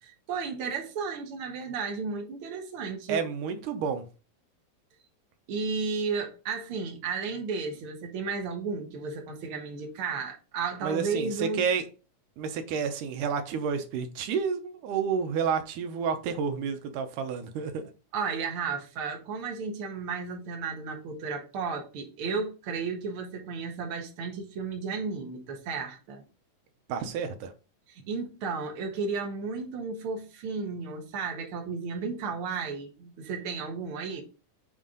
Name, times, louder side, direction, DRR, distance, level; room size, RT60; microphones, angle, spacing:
voice 1, 0.0-3.2 5.5-11.6 18.1-26.2 27.9-34.2, right 5 dB, 50° right, 2.0 m, -33 dB
voice 2, 3.1-4.1 10.8-11.8 12.4-17.8 26.9-27.5, right 6 dB, 90° right, 2.3 m, -30 dB
7.2 x 3.6 x 3.8 m
omnidirectional pair, 3.6 m